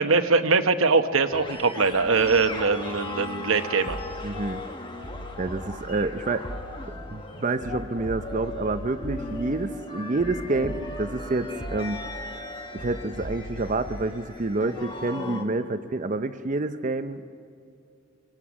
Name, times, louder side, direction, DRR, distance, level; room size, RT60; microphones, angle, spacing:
voice 1, 0.0-4.0, right 4 dB, 85° right, 8 dB, 1.0 m, -22 dB
sound 1, 1.3-15.5, left 2 dB, 25° left, 1.4 m, -38 dB
sound 2, 3.9-4.5 5.0-6.1 6.4-7.1 7.6-9.6 10.2-11.2 11.6-12.2 12.8-14.2, equal, 70° left, 3.9 m, -39 dB
voice 2, 4.2-4.6 5.4-6.5 7.1-12.0 12.7-17.3, right 2 dB, 35° right, 10 dB, 0.6 m, -28 dB
24.5 x 24.0 x 6.2 m, 2.3 s
head